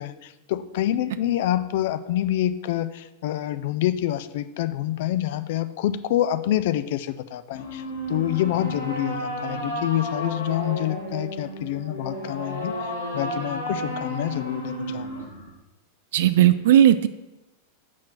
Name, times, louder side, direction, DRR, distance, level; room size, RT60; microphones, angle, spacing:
voice 1, 0.0-15.3, left 12 dB, 50° left, 13 dB, 0.3 m, -27 dB
sound 1, 7.5-15.5, equal, 75° left, 1.4 m, -32 dB
voice 2, 16.1-17.1, right 11 dB, 55° right, 13 dB, 0.3 m, -16 dB
6.2 x 4.4 x 5.8 m, 1.0 s
figure-of-eight pair, 90°, 0 cm